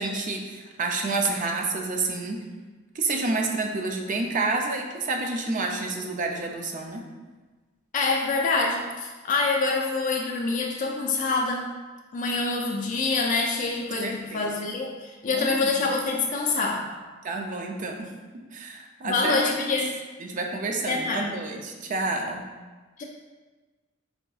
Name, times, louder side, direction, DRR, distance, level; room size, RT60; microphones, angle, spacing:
voice 1, 0.0-2.4 3.0-7.1 14.0-14.5 15.3-15.7 17.2-19.4 20.2-22.5, right 3 dB, 40° right, 2 dB, 0.4 m, -29 dB
voice 2, 7.9-11.7 12.1-16.9 19.0-19.9 20.9-21.3 23.0-23.1, left 3 dB, 40° left, -1 dB, 0.3 m, -26 dB
4.7 x 2.6 x 2.3 m, 1.3 s
head